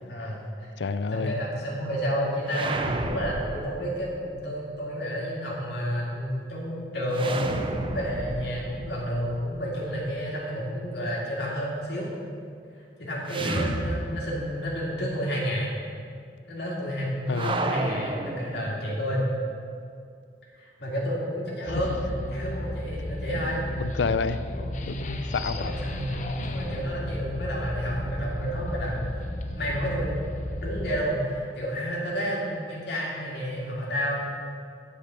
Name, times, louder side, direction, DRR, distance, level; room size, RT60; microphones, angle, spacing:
voice 1, 0.1-0.7 1.1-12.1 12.8-15.7 16.5-19.2 20.6-23.6 25.4-29.0 29.6-30.2 30.6-34.2, equal, 65° left, -5 dB, 2.2 m, -30 dB
voice 2, 0.8-1.4 13.8-13.9 17.3-17.5 23.8-24.4 24.9-25.7, left 4 dB, 90° left, 12 dB, 0.5 m, -29 dB
sound 1, 2.4-4.4 7.1-10.1 13.3-14.7 14.9-15.0 17.3-19.1, right 2 dB, 30° right, 0.6 m, -32 dB
sound 2, 21.6-31.0, left 1 dB, 45° left, 0.7 m, -33 dB
10.0 x 5.0 x 8.1 m, 2.3 s
head